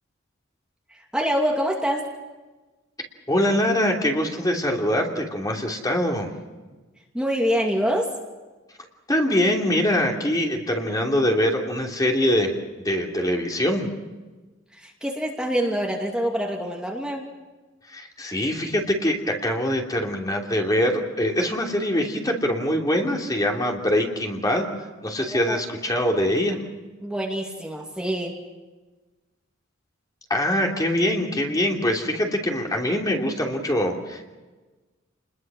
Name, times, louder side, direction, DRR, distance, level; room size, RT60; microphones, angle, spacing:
voice 1, 0.9-2.1 7.1-8.1 14.7-17.2 25.3-25.6 27.0-28.3, equal, 5° right, -1 dB, 2.6 m, -25 dB
voice 2, 3.3-6.3 9.1-12.5 12.8-13.9 17.8-24.7 25.0-26.6 30.3-34.3, left 1 dB, 20° left, 1 dB, 3.1 m, -23 dB
30.0 x 21.5 x 6.3 m, 1.2 s
head